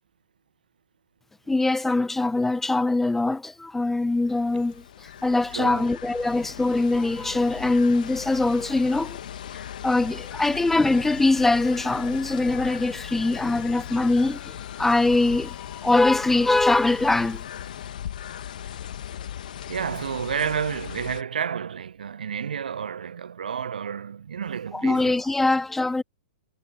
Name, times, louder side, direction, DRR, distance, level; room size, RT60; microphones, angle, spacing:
voice 1, 1.5-4.8 5.2-9.2 9.8-15.5 15.8-17.4 24.7-26.0, left 2 dB, 5° left, 0.3 m, -22 dB
sound 1, 4.1-21.2, left 10 dB, 60° left, 2.1 m, -38 dB
voice 2, 5.5-5.9 19.7-25.2, right 7 dB, 65° right, 1.0 m, -30 dB
Musical instrument, 10.3-16.7, left 12 dB, 25° left, 5.1 m, -46 dB
figure-of-eight pair, 110°, 5 cm